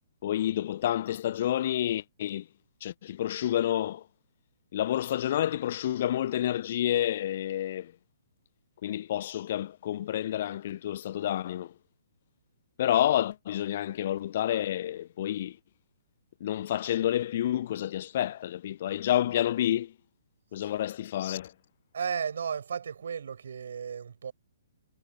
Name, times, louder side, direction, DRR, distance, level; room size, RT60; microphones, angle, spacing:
voice 1, 0.2-2.5 2.8-4.1 4.7-7.9 8.8-11.7 12.8-15.6 16.4-19.9 20.5-21.5, left 12 dB, 45° left, 0.9 m, -29 dB
voice 2, 21.9-24.3, right 7 dB, 55° right, 6.1 m, -34 dB
figure-of-eight pair, 125°, 0 cm